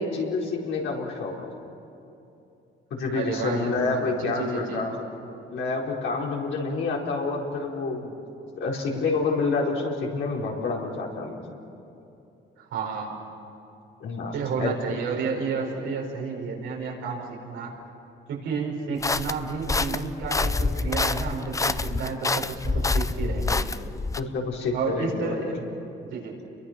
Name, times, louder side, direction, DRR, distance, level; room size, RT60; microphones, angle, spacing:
voice 1, 0.0-1.5 2.9-5.0 5.5-8.2 8.6-11.4 14.0-14.7 24.2-25.5, left 3 dB, 75° left, -2 dB, 4.5 m, -28 dB
voice 2, 3.1-4.9 12.6-13.1 14.3-17.7 18.3-23.7 24.7-25.7 26.0-26.4, right 5 dB, 85° right, -1 dB, 5.2 m, -31 dB
sound 1, 19.0-24.2, left 3 dB, 15° left, 0.6 m, -27 dB
30.0 x 23.0 x 6.0 m, 2.8 s
cardioid pair, 90°, 20 cm